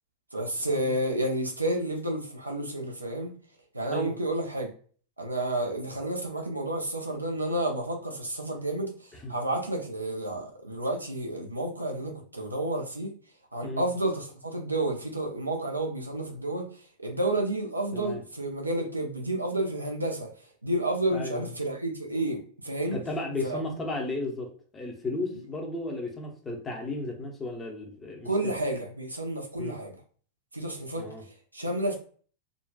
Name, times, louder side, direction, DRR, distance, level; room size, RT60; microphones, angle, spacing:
voice 1, 0.3-3.3 3.7-4.7 5.2-13.1 13.5-16.7 17.0-20.3 20.6-23.0 23.4-23.6 28.2-30.0 30.5-31.1 31.5-31.9, right 1 dB, 85° right, 0.6 m, -30 dB
voice 2, 21.1-21.5 22.9-28.5 29.6-29.7 30.9-31.2, left 2 dB, 20° left, 0.8 m, -34 dB
3.9 x 2.3 x 2.3 m
figure-of-eight pair, 90°, 0 cm